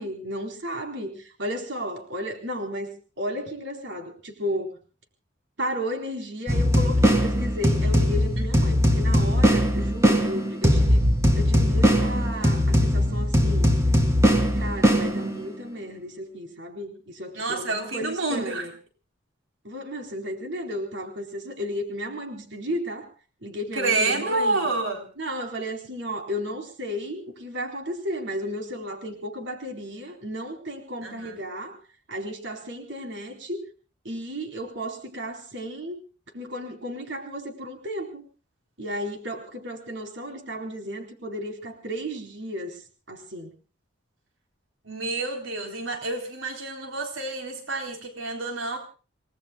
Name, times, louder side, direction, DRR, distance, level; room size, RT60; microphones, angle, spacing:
voice 1, 0.0-4.8 5.6-11.0 11.3-13.8 14.6-18.7 19.6-23.1 23.4-24.7 25.2-31.8 32.1-33.7 34.0-36.0 36.3-38.2 38.8-43.5, equal, 65° right, 4 dB, 4.1 m, -34 dB
sound 1, 6.5-15.6, equal, 15° right, 3.0 m, -20 dB
voice 2, 17.3-18.7 23.7-25.1 31.0-31.4 44.8-48.8, right 3 dB, 90° right, 4 dB, 4.0 m, -28 dB
29.0 x 19.5 x 2.3 m, 0.37 s
head